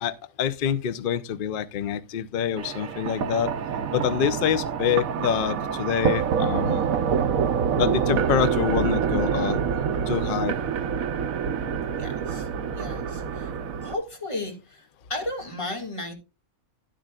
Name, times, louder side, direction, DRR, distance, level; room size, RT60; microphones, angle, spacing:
voice 1, 0.0-3.5 3.9-6.9 7.7-9.6 10.1-10.6, left 9 dB, 55° left, 0.6 m, -26 dB
sound 1, 2.6-13.9, right 7 dB, 70° right, 1.2 m, -26 dB
voice 2, 12.0-12.5 12.7-13.5 13.8-16.1, left 2 dB, 20° left, 1.9 m, -34 dB
12.5 x 10.0 x 2.3 m
omnidirectional pair, 1.5 m